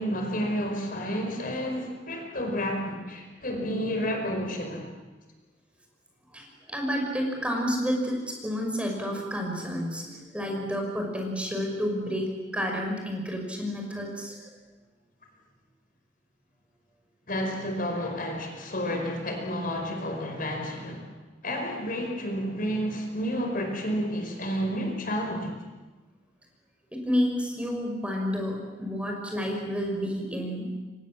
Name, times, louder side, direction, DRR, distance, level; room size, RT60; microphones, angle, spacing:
voice 1, 0.0-4.9 17.3-21.1 21.4-25.6, equal, 50° left, 3 dB, 5.0 m, -30 dB
voice 2, 6.3-14.4 26.9-30.7, equal, 5° right, 1 dB, 5.6 m, -30 dB
29.5 x 24.5 x 7.6 m, 1.2 s
head